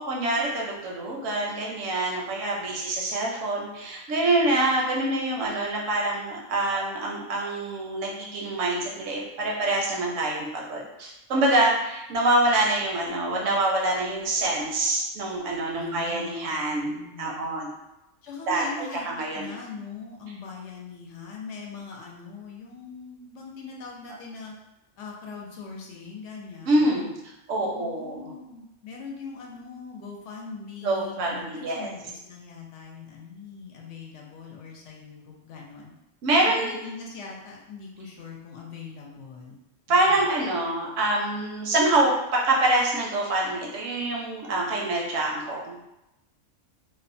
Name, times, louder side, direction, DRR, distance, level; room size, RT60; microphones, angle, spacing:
voice 1, 0.0-17.7 18.5-18.7 19.1-19.5 26.7-27.2 27.5-28.3 30.8-31.9 36.2-36.8 39.9-45.8, right 2 dB, 80° right, -2 dB, 1.0 m, -25 dB
voice 2, 15.7-17.5 18.2-24.5 25.0-27.1 27.6-35.9 36.6-39.6 40.1-40.3, left 4 dB, 75° left, -1 dB, 0.9 m, -41 dB
2.7 x 2.1 x 2.5 m, 0.91 s
omnidirectional pair, 1.3 m